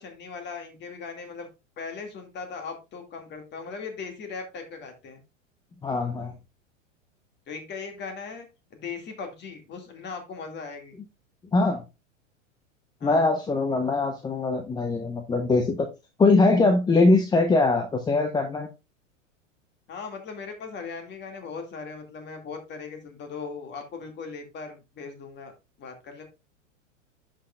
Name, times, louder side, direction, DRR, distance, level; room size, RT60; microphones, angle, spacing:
voice 1, 0.0-1.5 1.8-5.2 7.5-11.0 13.0-13.3 19.9-25.5 25.8-26.2, left 5 dB, 30° left, 5 dB, 2.2 m, -38 dB
voice 2, 5.8-6.3 11.5-11.8 13.0-15.9 16.2-18.7, left 3 dB, 10° left, 6 dB, 0.7 m, -22 dB
11.0 x 5.7 x 2.4 m, 0.26 s
figure-of-eight pair, 90°, 38 cm